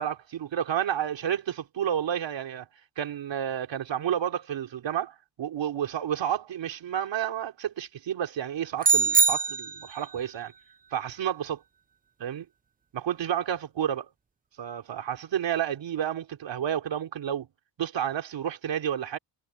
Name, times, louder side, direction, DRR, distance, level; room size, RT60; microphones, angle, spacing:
voice 1, 0.0-2.7 3.0-10.5 10.9-11.6 12.2-12.5 12.9-14.0 14.6-17.5 17.8-19.2, right 10 dB, 75° right, 3.8 m, -30 dB
sound 1, 8.8-10.1, right 4 dB, 20° right, 0.5 m, -23 dB
cardioid pair, 115°, 44 cm